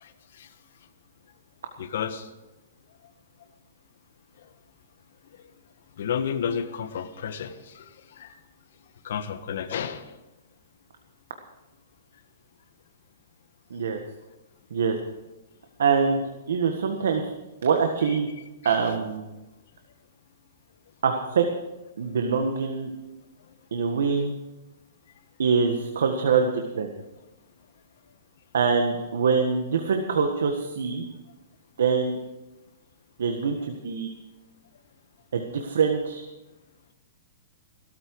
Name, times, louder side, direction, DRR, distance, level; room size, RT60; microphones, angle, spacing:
voice 1, 1.8-2.3 6.0-7.9 8.2-8.3 9.0-10.0 18.6-18.8, left 7 dB, 65° left, 1.4 m, -31 dB
voice 2, 15.8-16.2 16.5-17.3 17.6-18.3 18.6-19.3 21.0-21.4 22.0-22.9 23.7-24.4 25.4-26.9 28.5-31.0 31.8-32.2 33.2-34.1 35.3-36.2, right 5 dB, 90° right, 1.6 m, -24 dB
16.5 x 13.5 x 4.8 m
hypercardioid pair, 165°, 0 cm